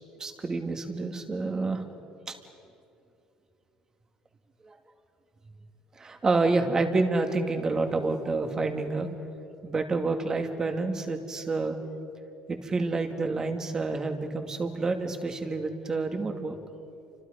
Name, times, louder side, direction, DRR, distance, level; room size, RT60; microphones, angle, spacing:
voice 1, 0.2-1.8 2.3-2.4 4.6-4.8 6.0-9.2 9.6-11.8 12.5-16.6, right 3 dB, 25° right, 5 dB, 2.5 m, -28 dB
29.5 x 26.0 x 5.3 m, 2.7 s
cardioid pair, 105°, 2 cm